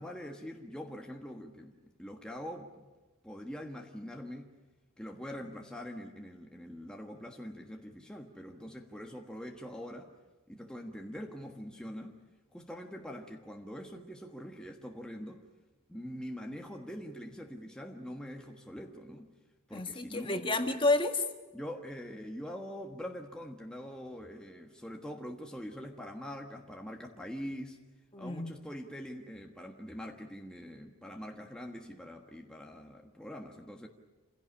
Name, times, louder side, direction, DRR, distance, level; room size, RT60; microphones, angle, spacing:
voice 1, 0.0-2.9 3.2-4.5 5.0-10.1 10.5-12.2 12.5-15.4 15.9-19.3 19.7-20.4 21.5-27.8 28.2-33.9, equal, 5° left, 1 dB, 1.5 m, -44 dB
voice 2, 19.7-21.2 28.1-28.6, left 2 dB, 25° left, 5 dB, 1.7 m, -30 dB
27.5 x 16.5 x 10.0 m, 1.2 s
head